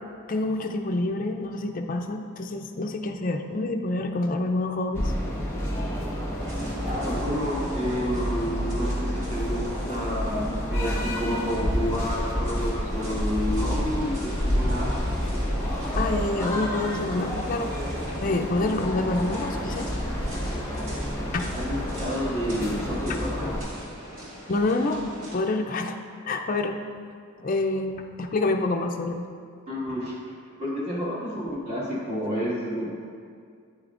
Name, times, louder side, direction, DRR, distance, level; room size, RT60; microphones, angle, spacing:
voice 1, 0.3-5.1 15.9-17.7 18.2-19.9 20.3-20.4 21.3-21.5 23.0-23.2 24.5-25.1 25.3-26.0 26.3-26.8 27.4-29.2, left 2 dB, 40° left, 4 dB, 0.4 m, -27 dB
sound 1, 4.9-23.6, equal, 10° left, 1.1 m, -29 dB
sound 2, 6.4-25.3, equal, 65° right, 2.0 m, -39 dB
voice 2, 6.8-14.9 21.5-23.5 29.7-30.2 30.6-32.9, equal, 30° right, -7 dB, 1.8 m, -30 dB
9.6 x 8.3 x 2.5 m, 2.2 s
head